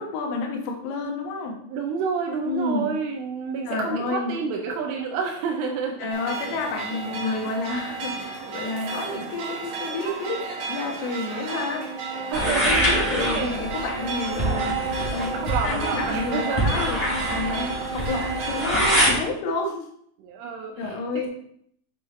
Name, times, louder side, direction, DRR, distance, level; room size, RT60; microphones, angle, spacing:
voice 1, 0.0-1.6 2.5-2.9 3.7-4.4 6.0-14.9 15.1-15.3 15.6-19.9 20.8-21.3, left 3 dB, 80° left, 1 dB, 3.8 m, -30 dB
voice 2, 1.7-6.1 12.3-13.7 15.3-16.8 20.2-21.3, right 5 dB, 80° right, 2 dB, 3.1 m, -29 dB
sound 1, 6.1-19.1, right 4 dB, 55° right, 2.4 m, -32 dB
sound 2, 12.3-19.1, equal, 15° left, 1.9 m, -25 dB
8.0 x 6.5 x 3.2 m, 0.68 s
omnidirectional pair, 5.9 m